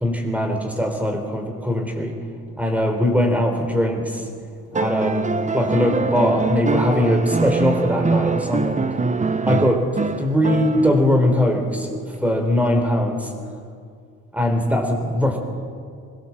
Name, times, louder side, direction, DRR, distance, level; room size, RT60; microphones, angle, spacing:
voice 1, 0.0-2.2 2.6-4.3 4.7-9.0 9.5-9.9 10.2-13.3 14.3-15.4, left 1 dB, 5° right, 4 dB, 3.9 m, -21 dB
sound 1, 4.7-11.2 12.7-12.8, right 4 dB, 25° right, 1.0 m, -23 dB
22.5 x 16.5 x 7.4 m, 2.2 s
cardioid pair, 90°, 30 cm